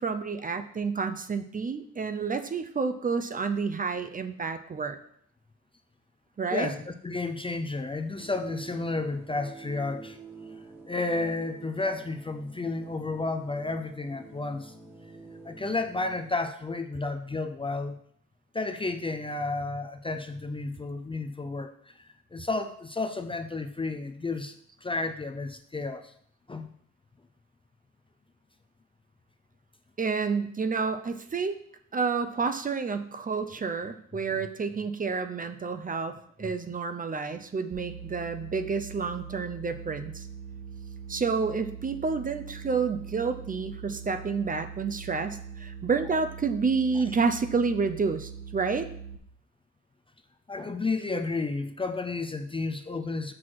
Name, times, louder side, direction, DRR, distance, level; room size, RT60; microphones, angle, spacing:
voice 1, 0.0-5.0 6.4-6.7 30.0-31.6 31.9-40.3 41.1-48.9, right 5 dB, 30° right, 9 dB, 0.6 m, -29 dB
voice 2, 6.5-10.2 10.9-14.7 15.4-18.0 18.5-22.0 22.3-24.5 24.8-26.1 26.5-26.7 47.0-47.1 50.5-53.3, left 3 dB, 15° left, 6 dB, 0.5 m, -32 dB
sound 1, 7.0-16.4, right 3 dB, 5° right, 1.3 m, -47 dB
sound 2, 37.7-49.2, right 6 dB, 45° right, 1.6 m, -42 dB
6.2 x 5.9 x 4.7 m, 0.66 s
cardioid pair, 90°, 30 cm